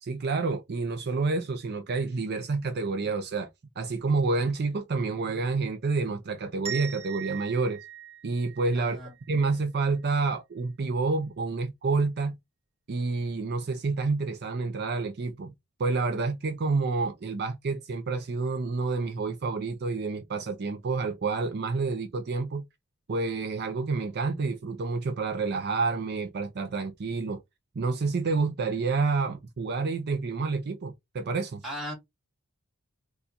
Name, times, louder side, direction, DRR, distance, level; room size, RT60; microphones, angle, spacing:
voice 1, 0.0-3.5 3.8-7.8 8.2-9.0 9.3-12.3 12.9-15.5 15.8-22.6 23.1-27.4 27.8-31.6, right 3 dB, 45° right, 0.4 m, -29 dB
sound 1, 6.6-9.4, right 9 dB, 25° right, 0.8 m, -40 dB
voice 2, 8.7-9.1 31.6-31.9, equal, ahead, 2.2 m, -36 dB
4.1 x 2.3 x 2.4 m
head